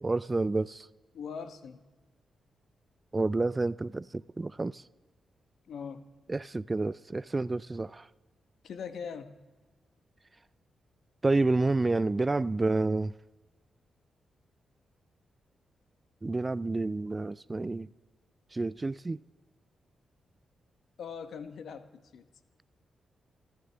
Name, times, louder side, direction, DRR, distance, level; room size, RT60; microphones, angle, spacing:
voice 1, 0.0-0.9 3.1-4.8 6.3-8.1 11.2-13.1 16.2-17.9 18.5-19.2, right 3 dB, 30° right, 19 dB, 0.4 m, -29 dB
voice 2, 1.1-1.8 5.7-6.1 8.6-9.4 21.0-22.3, left 6 dB, 70° left, 10 dB, 1.1 m, -41 dB
26.5 x 12.0 x 3.4 m, 1.2 s
hypercardioid pair, 40°, 0 cm